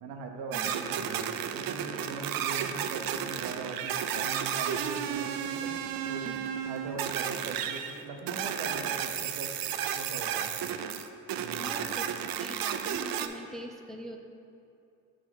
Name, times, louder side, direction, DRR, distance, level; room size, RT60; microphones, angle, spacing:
voice 1, 0.0-5.7 6.1-6.4 6.7-10.5 11.3-11.9, right 4 dB, 85° right, 3 dB, 0.9 m, -41 dB
sound 1, 0.5-13.3, right 9 dB, 70° right, 0.5 m, -33 dB
voice 2, 11.5-12.1 12.4-14.2, equal, ahead, 3 dB, 0.4 m, -43 dB
6.2 x 4.9 x 4.5 m, 2.5 s
cardioid pair, 100°, 36 cm